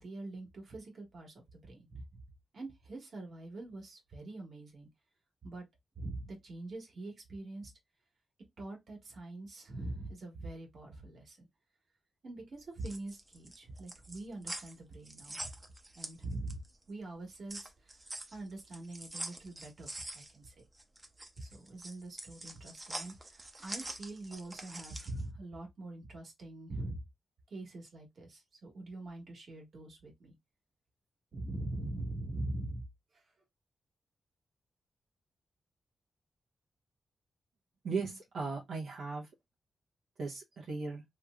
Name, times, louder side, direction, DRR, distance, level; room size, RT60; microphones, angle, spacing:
voice 1, 0.0-2.1 2.5-4.9 5.4-5.6 6.0-7.7 8.6-11.5 12.2-15.5 16.0-16.6 16.9-18.0 18.3-20.6 21.4-27.0 27.5-30.4 31.3-32.8 33.1-33.2, right 2 dB, 60° right, 1.6 m, -43 dB
sound 1, 12.6-16.8 17.1-25.2, right 1 dB, 25° right, 0.7 m, -45 dB
voice 2, 37.8-39.3 40.2-41.0, right 4 dB, 85° right, 1.1 m, -37 dB
3.1 x 3.1 x 2.4 m
wide cardioid pair, 110°, 0 cm